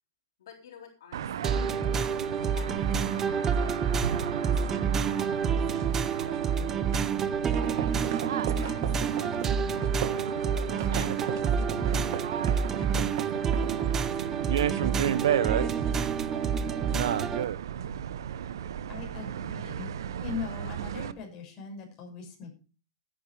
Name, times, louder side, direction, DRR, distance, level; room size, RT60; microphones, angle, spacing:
voice 1, 0.4-1.6 2.4-6.6 8.5-15.4 15.6-17.1, left 7 dB, 75° left, 1 dB, 4.0 m, -53 dB
sound 1, 1.1-21.1, right 9 dB, 80° right, 1.0 m, -34 dB
sound 2, 1.4-17.4, right 6 dB, 20° right, 0.7 m, -28 dB
Konnakol with Mridangam, 7.5-10.3 10.8-13.9, right 10 dB, 50° right, 1.8 m, -36 dB
voice 2, 18.9-19.9 20.2-22.5, left 5 dB, 30° left, 1 dB, 6.7 m, -39 dB
13.5 x 10.0 x 4.8 m, 0.34 s
supercardioid pair, 150°, 2 cm